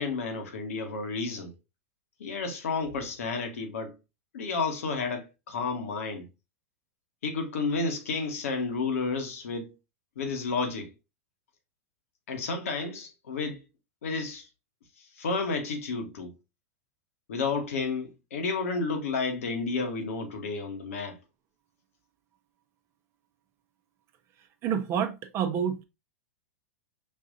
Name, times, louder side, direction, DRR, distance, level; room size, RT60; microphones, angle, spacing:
voice 1, 0.0-1.5 2.2-3.9 4.3-6.3 7.2-9.7 10.2-10.9 12.3-13.6 14.0-14.5 15.2-16.3 17.3-21.2, left 4 dB, 70° left, 1.2 m, -31 dB
voice 2, 24.6-25.8, right 8 dB, 35° right, 0.7 m, -28 dB
5.4 x 2.6 x 2.6 m
hypercardioid pair, 100°, 8 cm